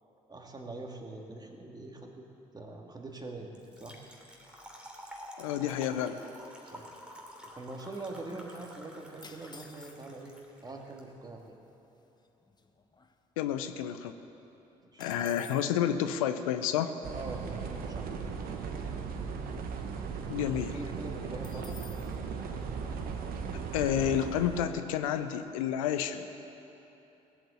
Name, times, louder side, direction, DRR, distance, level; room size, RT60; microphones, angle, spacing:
voice 1, 0.3-2.3 2.5-4.0 6.6-6.9 7.5-10.3 10.6-11.6 14.9-15.5 17.1-18.4 20.7-21.8, right 2 dB, 25° right, 1 dB, 2.4 m, -43 dB
Trickle dribble / Fill (with liquid), 3.5-11.0, equal, 5° right, 3.0 m, -50 dB
voice 2, 5.4-6.2 13.4-14.1 15.0-16.9 20.3-20.8 23.7-26.3, left 10 dB, 80° left, 10 dB, 0.6 m, -30 dB
sound 1, 9.2-10.3 11.1-11.2 11.4-11.7 12.2-13.6 14.0-14.1 14.4-15.8 21.4-22.2, left 4 dB, 25° left, 1.2 m, -52 dB
sound 2, 17.0-24.7, right 5 dB, 60° right, 1.3 m, -37 dB
18.0 x 8.0 x 8.2 m, 3.0 s
hypercardioid pair, 50°, 17 cm